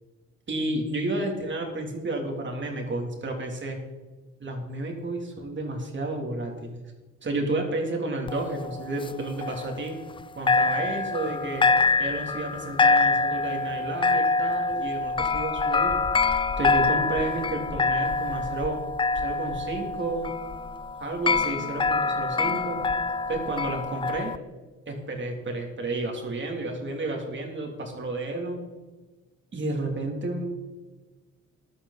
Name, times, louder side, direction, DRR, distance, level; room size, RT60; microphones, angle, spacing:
voice 1, 0.5-3.8 4.4-6.8 7.2-10.0 10.4-11.7 12.0-15.9 16.6-18.8 19.2-20.3 21.0-22.8 23.3-24.3 24.9-28.6 29.5-30.4, right 2 dB, 40° right, 2 dB, 3.1 m, -31 dB
sound 1, 8.3-10.2 10.5-24.4, left 4 dB, 15° left, 0.4 m, -25 dB
15.0 x 11.5 x 4.2 m, 1.3 s
cardioid pair, 90°, 30 cm